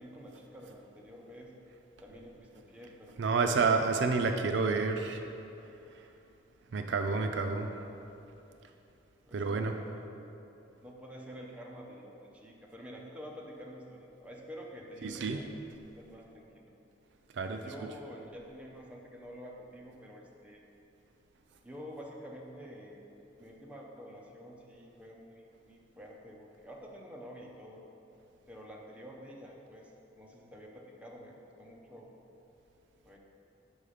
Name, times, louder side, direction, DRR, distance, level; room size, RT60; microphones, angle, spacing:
voice 1, 0.0-1.5 2.0-3.6 9.3-10.3 10.8-15.5 15.8-16.7 17.6-20.6 21.6-23.1 23.4-27.8 28.5-32.1 33.0-33.2, equal, 5° right, -2 dB, 0.6 m, -48 dB
voice 2, 3.2-5.3 6.7-7.7 9.3-9.7 15.0-15.4 17.3-17.6, right 4 dB, 65° right, 6 dB, 0.4 m, -29 dB
5.5 x 5.4 x 4.9 m, 2.9 s
head